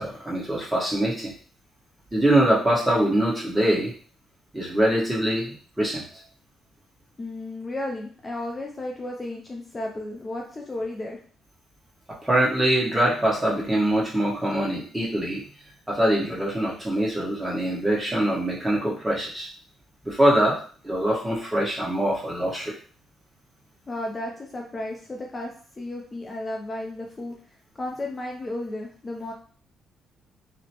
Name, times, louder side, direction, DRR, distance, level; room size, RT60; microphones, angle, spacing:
voice 1, 0.0-1.3 2.1-3.9 4.5-6.0 12.2-15.4 15.9-19.5 20.0-20.6 20.8-22.7, right 1 dB, 10° right, -5 dB, 1.3 m, -23 dB
voice 2, 7.2-11.2 23.9-25.5 25.8-27.4 27.7-29.3, left 1 dB, 25° left, 0 dB, 0.5 m, -33 dB
3.0 x 2.1 x 2.8 m, 0.43 s
cardioid pair, 90°, 0 cm